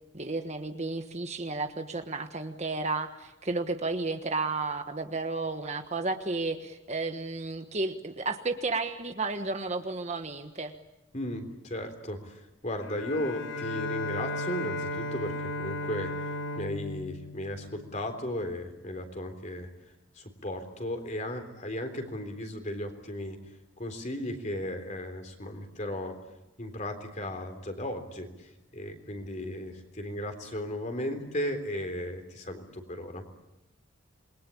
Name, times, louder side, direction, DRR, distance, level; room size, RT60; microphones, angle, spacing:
voice 1, 0.1-10.7, right 3 dB, 35° right, 7 dB, 1.3 m, -32 dB
voice 2, 11.1-16.1 16.5-19.7 20.2-23.4 23.8-26.2 26.6-33.2, left 1 dB, 35° left, 6 dB, 3.7 m, -35 dB
Bowed string instrument, 12.8-18.3, left 1 dB, 80° left, 4.0 m, -35 dB
28.0 x 22.0 x 8.5 m, 0.95 s
head